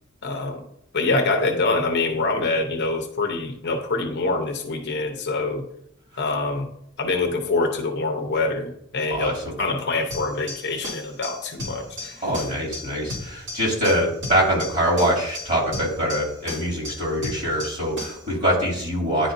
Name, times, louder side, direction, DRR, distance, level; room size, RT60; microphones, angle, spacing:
voice 1, 0.2-0.6 0.9-5.7 6.2-6.7 7.0-12.3, left 3 dB, 50° left, 4 dB, 0.8 m, -25 dB
voice 2, 9.1-9.5 12.2-19.3, equal, 35° right, -3 dB, 2.6 m, -24 dB
sound 1, 10.1-18.3, left 1 dB, 55° right, 2.6 m, -35 dB
10.0 x 4.1 x 2.6 m, 0.74 s
head